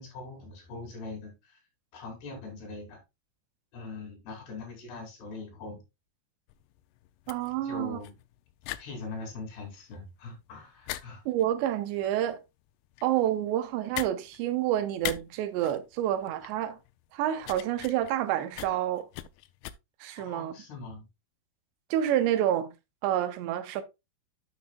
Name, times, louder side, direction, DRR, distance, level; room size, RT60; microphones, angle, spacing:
voice 1, 0.0-1.6 1.9-3.0 3.7-5.8 7.6-8.2 8.8-11.2 20.2-21.1, left 3 dB, 70° left, 5.3 m, -42 dB
sound 1, 6.5-19.7, left 15 dB, 90° left, 2.8 m, -42 dB
voice 2, 7.3-8.0 11.3-12.4 13.0-16.8 17.1-19.1 20.0-20.5 21.9-22.7 23.0-23.8, right 11 dB, 85° right, 3.1 m, -28 dB
10.0 x 7.2 x 2.4 m
omnidirectional pair, 4.9 m